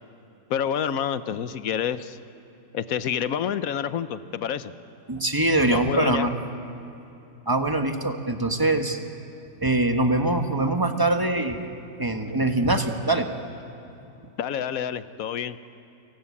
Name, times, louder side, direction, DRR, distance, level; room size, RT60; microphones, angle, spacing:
voice 1, 0.5-2.2 2.7-4.7 5.7-6.3 14.4-15.6, left 8 dB, 60° left, 13 dB, 1.1 m, -28 dB
voice 2, 5.1-6.3 7.5-9.0 9.6-11.6 12.0-13.3, right 2 dB, 15° right, 5 dB, 1.3 m, -23 dB
29.5 x 18.5 x 8.5 m, 2.9 s
omnidirectional pair, 1.9 m